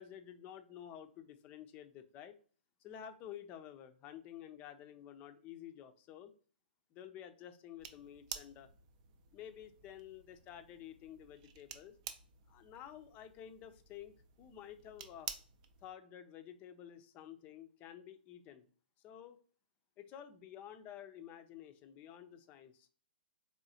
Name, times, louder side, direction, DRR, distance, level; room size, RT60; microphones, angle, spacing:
voice 1, 0.0-2.4 2.8-6.3 6.9-8.7 9.3-11.9 12.5-15.3 15.8-18.7 19.0-19.4 20.0-22.9, left 10 dB, 25° left, 0.5 m, -51 dB
sound 1, 7.8-15.9, right 8 dB, 40° right, 0.5 m, -51 dB
3.8 x 3.4 x 2.7 m
hypercardioid pair, 130°, 6 cm